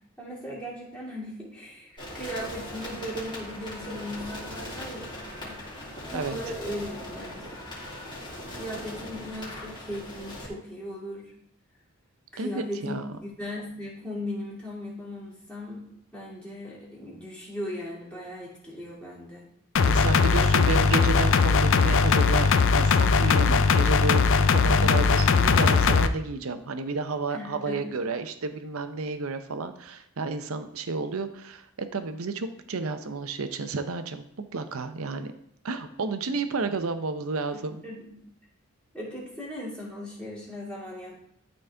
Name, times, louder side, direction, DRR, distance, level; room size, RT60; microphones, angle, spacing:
voice 1, 0.2-5.1 5.4-5.6 6.1-7.5 8.5-11.3 12.3-15.8 16.1-19.5 20.2-20.6 24.7-25.1 27.3-27.9 37.5-38.1 38.9-41.2, left 1 dB, 5° left, -6 dB, 2.5 m, -38 dB
sound 1, 2.0-10.5, left 1 dB, 20° left, 2.9 m, -39 dB
voice 2, 12.4-13.0 19.8-34.3 34.5-35.3 35.6-37.8, right 3 dB, 65° right, 10 dB, 0.6 m, -31 dB
sound 2, 19.8-26.1, left 5 dB, 60° left, 0.5 m, -20 dB
12.0 x 4.1 x 3.4 m, 0.74 s
head